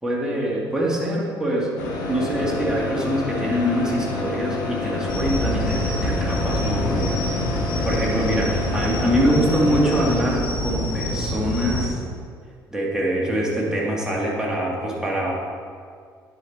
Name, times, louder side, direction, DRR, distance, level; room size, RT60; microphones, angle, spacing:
voice 1, 0.0-12.0 12.7-15.3, equal, 5° right, -4 dB, 2.3 m, -24 dB
sound 1, 1.8-10.1, left 3 dB, 70° left, 1.1 m, -28 dB
sound 2, 5.1-11.9, equal, 40° left, 2.0 m, -26 dB
10.5 x 4.9 x 4.2 m, 2.1 s
figure-of-eight pair, 50°, 11 cm